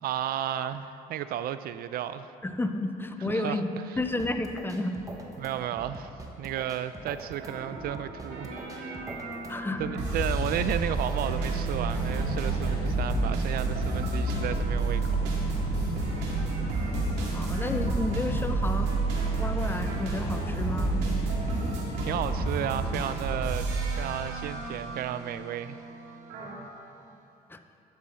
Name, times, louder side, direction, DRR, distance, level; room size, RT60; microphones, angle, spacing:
voice 1, 0.0-2.3 3.2-3.6 5.4-6.1 6.4-9.0 9.8-15.9 22.0-23.7 24.0-25.8, right 11 dB, 65° right, 12 dB, 0.4 m, -33 dB
voice 2, 2.4-3.7 4.0-5.0 9.5-9.9 17.3-18.9 19.4-21.0 27.5-27.6, left 2 dB, 10° left, 7 dB, 0.6 m, -31 dB
sound 1, 3.9-11.9, right 2 dB, 20° right, 1.1 m, -44 dB
sound 2, 7.4-26.5, right 3 dB, 85° right, 2.1 m, -30 dB
sound 3, 11.9-23.1, left 5 dB, 75° left, 1.0 m, -40 dB
12.0 x 7.7 x 4.2 m, 2.7 s
cardioid pair, 110°, 17 cm